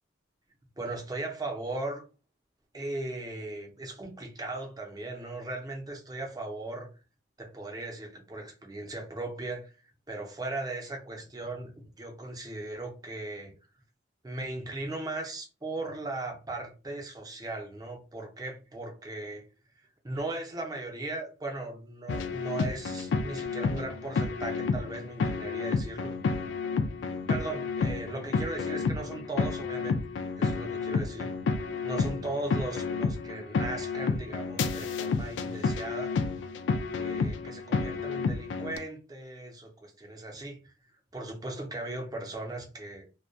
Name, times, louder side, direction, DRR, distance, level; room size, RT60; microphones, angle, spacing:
voice 1, 0.8-2.0 2.7-6.9 7.4-9.7 10.1-13.5 14.2-19.4 19.8-26.1 27.3-30.0 30.4-31.3 31.8-36.1 36.9-40.6 41.1-43.1, right 2 dB, 20° right, 0.6 m, -38 dB
sound 1, 22.1-38.8, left 4 dB, 70° left, 0.3 m, -30 dB
2.2 x 2.1 x 2.6 m
head